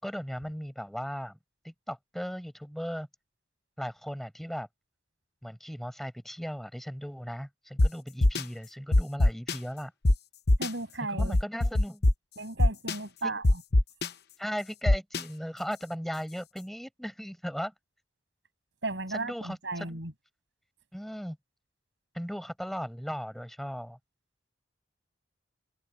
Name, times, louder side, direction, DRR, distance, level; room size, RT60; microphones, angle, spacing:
voice 1, 0.0-1.4 1.6-3.1 3.8-4.7 5.4-9.9 11.1-12.0 13.2-13.3 14.4-17.7 19.1-20.0 20.9-21.4 22.1-24.0, equal, ahead, 5.2 m, -37 dB
sound 1, 7.8-7.9 8.2-8.4 8.9-9.5 10.0-10.1 10.5-10.7 11.2-12.1 12.6-12.9 13.4-14.1 14.9-15.2, left 1 dB, 55° left, 1.0 m, -21 dB
voice 2, 10.6-11.4 12.4-13.6 18.8-20.1, right 2 dB, 70° right, 7.6 m, -35 dB
open air
head